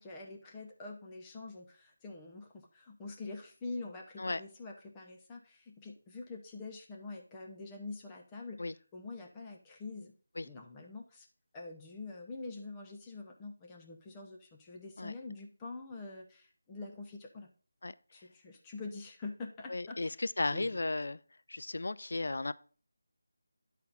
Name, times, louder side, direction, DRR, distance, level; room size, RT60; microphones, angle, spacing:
voice 1, 0.0-8.6 8.9-10.1 10.4-11.3 11.5-17.5 18.1-20.2 20.5-20.8, left 3 dB, 15° left, 0.7 m, -45 dB
voice 2, 19.7-21.2 21.5-22.5, left 2 dB, 65° left, 0.4 m, -35 dB
10.5 x 4.1 x 4.0 m
figure-of-eight pair, 160°, 0 cm